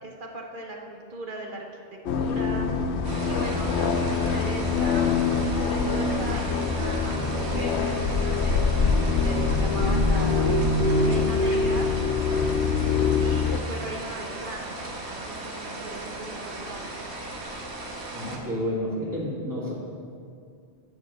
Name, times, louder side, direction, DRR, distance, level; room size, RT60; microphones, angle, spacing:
voice 1, 0.0-2.7 3.3-5.1 5.5-10.7 11.0-12.0 13.2-17.1, right 1 dB, 50° right, 0 dB, 0.9 m, -38 dB
sound 1, 2.1-13.6, left 4 dB, 80° left, 0.9 m, -24 dB
sound 2, 3.0-18.4, right 2 dB, 80° right, 1.3 m, -37 dB
voice 2, 18.1-19.7, equal, 20° right, -6 dB, 2.0 m, -30 dB
7.1 x 6.5 x 6.2 m, 2.3 s
omnidirectional pair, 1.1 m